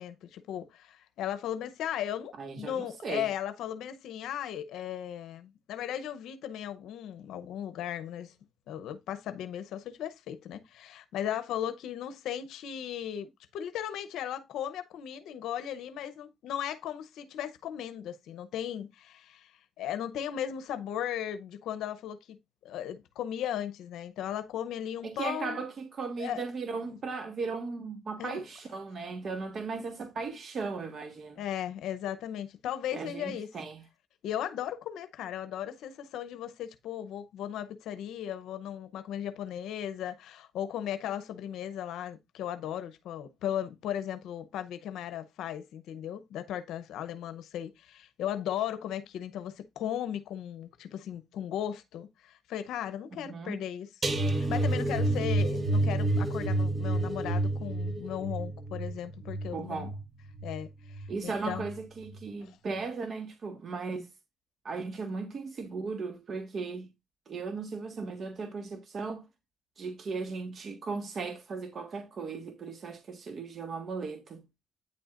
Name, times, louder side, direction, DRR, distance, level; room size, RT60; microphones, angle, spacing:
voice 1, 0.0-8.3 8.7-22.4 22.6-25.6 26.2-26.4 28.2-28.4 31.4-33.5 34.2-59.9 60.4-61.7 62.4-62.6, left 10 dB, 85° left, 0.7 m, -36 dB
voice 2, 2.4-3.3 25.0-31.4 32.9-33.8 53.2-53.6 59.5-60.0 61.1-64.1 64.6-66.9 67.3-69.3 69.8-74.4, right 4 dB, 50° right, 1.6 m, -37 dB
sound 1, 54.0-61.1 61.4-61.8 62.1-62.2, right 2 dB, 30° right, 1.5 m, -29 dB
9.4 x 7.7 x 2.5 m
cardioid pair, 90°, 0 cm